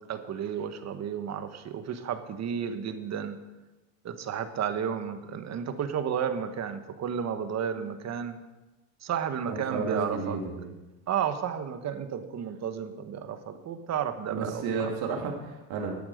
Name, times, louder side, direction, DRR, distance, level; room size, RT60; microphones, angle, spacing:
voice 1, 0.1-3.4 4.0-8.4 9.0-10.4 11.1-14.6 15.1-15.2, right 8 dB, 40° right, 9 dB, 1.3 m, -32 dB
voice 2, 9.5-10.7 14.3-16.0, right 4 dB, 60° right, 0 dB, 2.8 m, -32 dB
12.0 x 8.6 x 6.6 m, 1.1 s
supercardioid pair, 110°, 42 cm